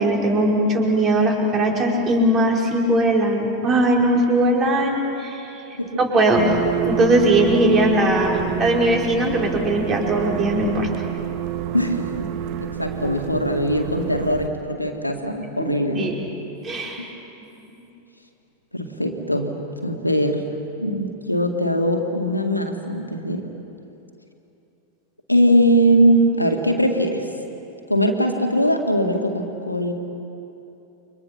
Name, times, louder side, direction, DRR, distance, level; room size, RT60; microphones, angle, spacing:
voice 1, 0.0-5.4 6.0-6.6 6.8-10.9 15.6-16.2 16.6-17.1, right 1 dB, 25° right, 0 dB, 5.3 m, -19 dB
sound 1, 6.3-14.5, right 12 dB, 45° right, 1.2 m, -28 dB
voice 2, 11.7-12.3 12.6-16.1 17.0-17.1 18.7-20.4 20.8-23.4 25.3-27.3 27.9-29.9, equal, 85° left, 3 dB, 2.1 m, -21 dB
29.5 x 25.0 x 6.0 m, 2.9 s
figure-of-eight pair, 90°, 0 cm